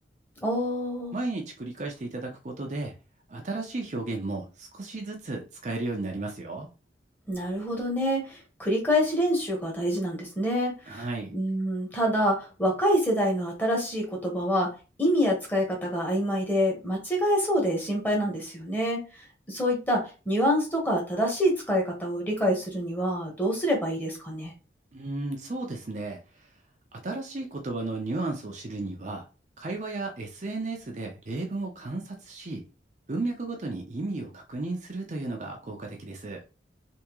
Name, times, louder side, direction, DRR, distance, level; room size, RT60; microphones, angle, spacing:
voice 1, 0.4-1.2 7.3-11.1 11.3-19.0 19.5-24.5, equal, 10° left, 0 dB, 1.1 m, -26 dB
voice 2, 1.1-2.9 3.3-6.7 10.9-11.4 24.9-26.2 26.9-29.3 29.6-32.6 33.1-36.4, right 2 dB, 40° right, 1 dB, 0.6 m, -34 dB
3.5 x 2.8 x 3.0 m, 0.32 s
head